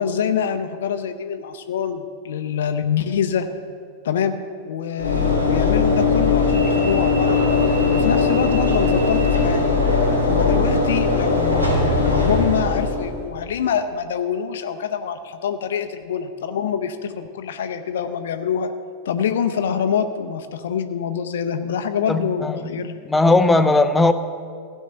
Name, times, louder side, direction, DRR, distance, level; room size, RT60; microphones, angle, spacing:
voice 1, 0.0-3.5 4.0-4.4 4.7-7.4 7.9-9.7 10.3-18.7 19.1-22.9, left 7 dB, 60° left, 8 dB, 0.6 m, -25 dB
Train / Engine / Alarm, 5.0-13.2, left 3 dB, 85° right, 2.8 m, -19 dB
voice 2, 22.1-22.8 23.1-24.1, left 2 dB, 10° left, 9 dB, 0.6 m, -17 dB
15.5 x 5.4 x 6.9 m, 2.1 s
figure-of-eight pair, 90°, 0 cm